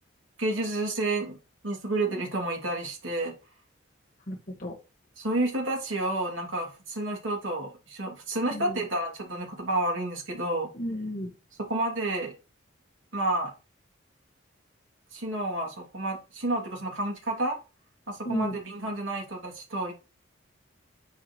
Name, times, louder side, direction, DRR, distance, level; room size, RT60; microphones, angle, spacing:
voice 1, 0.4-1.4 1.6-3.4 5.2-10.7 11.6-12.3 13.1-13.5 15.1-17.6 18.1-19.9, right 2 dB, 75° right, 0 dB, 2.7 m, -30 dB
voice 2, 4.3-4.8 8.5-8.8 10.7-11.3 18.2-18.5, equal, 45° left, 2 dB, 1.6 m, -33 dB
9.7 x 4.5 x 3.1 m, 0.32 s
head